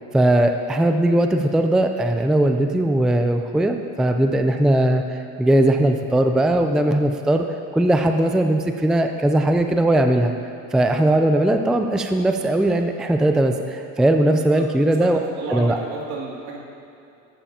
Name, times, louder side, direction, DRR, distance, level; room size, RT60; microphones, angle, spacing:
voice 1, 0.1-7.4 7.7-10.3 10.7-15.2 15.5-15.8, right 1 dB, ahead, 5 dB, 0.4 m, -19 dB
voice 2, 15.0-16.6, right 4 dB, 75° right, -3 dB, 2.8 m, -32 dB
14.0 x 12.0 x 2.9 m, 2.7 s
supercardioid pair, 95°, 42 cm